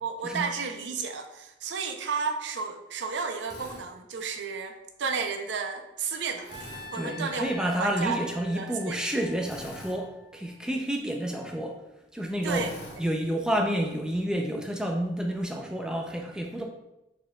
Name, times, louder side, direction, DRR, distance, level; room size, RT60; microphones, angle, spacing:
voice 1, 0.0-8.2 8.5-9.0 12.4-12.7, right 5 dB, 85° right, 5 dB, 0.6 m, -32 dB
Drill, 3.4-3.8 6.4-6.9 9.4-10.0 12.4-13.0, left 1 dB, 90° left, 1.5 m, -43 dB
Trumpet, 6.5-10.7, left 2 dB, 20° right, 0.7 m, -45 dB
voice 2, 6.9-11.8 12.1-12.7 13.0-16.6, right 1 dB, 5° right, 1 dB, 0.4 m, -29 dB
4.9 x 4.3 x 2.3 m, 0.91 s
head